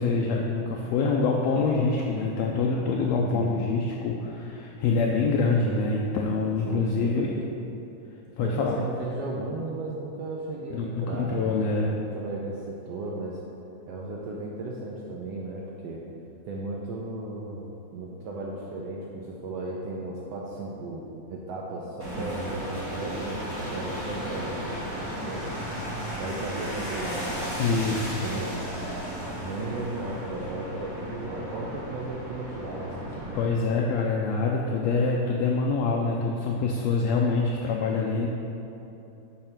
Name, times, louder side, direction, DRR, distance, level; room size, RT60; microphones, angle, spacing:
voice 1, 0.0-7.3 8.4-8.8 10.7-11.9 27.6-28.2 33.3-38.3, left 4 dB, 80° left, -1 dB, 1.6 m, -25 dB
voice 2, 3.2-3.7 6.7-7.3 8.4-13.4 13.9-16.0 16.4-25.5 26.2-27.3 27.9-28.9 29.4-33.4, right 2 dB, 75° right, -2 dB, 1.6 m, -35 dB
sound 1, 22.0-33.5, equal, 10° right, 1.1 m, -35 dB
7.7 x 4.4 x 5.8 m, 2.9 s
omnidirectional pair, 3.3 m